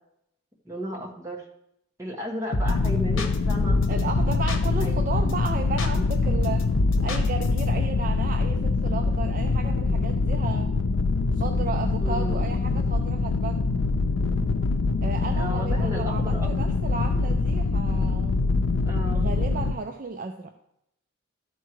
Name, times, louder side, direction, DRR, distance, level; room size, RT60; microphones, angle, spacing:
voice 1, 0.6-1.4 2.0-3.8 4.8-5.1 12.0-12.5 15.4-16.5 18.8-19.3, equal, 15° right, -2 dB, 1.5 m, -34 dB
sound 1, 2.5-2.9 3.2-4.8 5.1-5.5 5.8-7.6, left 1 dB, 70° left, 0.9 m, -28 dB
sound 2, 2.6-19.7, left 3 dB, 90° left, 0.5 m, -24 dB
voice 2, 3.9-6.7 7.0-10.7 11.3-13.7 15.0-18.4 19.1-20.5, right 4 dB, 40° right, 5 dB, 0.4 m, -34 dB
12.5 x 4.6 x 4.7 m, 0.79 s
head